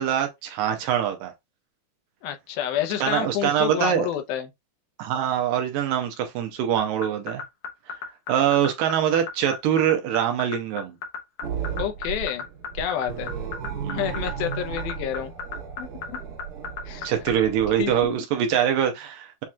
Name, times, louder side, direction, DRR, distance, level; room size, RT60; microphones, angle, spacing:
voice 1, 0.0-1.3 3.0-4.1 5.0-7.4 8.3-11.0 13.7-14.0 17.0-19.4, right 9 dB, 75° right, 2.2 m, -24 dB
voice 2, 2.2-4.5 11.8-12.5 12.7-13.3 13.9-15.3 15.8-16.2 16.9-17.1 17.8-18.1, left 10 dB, 80° left, 2.6 m, -29 dB
sound 1, 6.8-17.3, left 5 dB, 60° left, 2.3 m, -32 dB
sound 2, 11.4-18.2, right 7 dB, 60° right, 2.1 m, -34 dB
7.4 x 2.9 x 2.3 m
omnidirectional pair, 4.3 m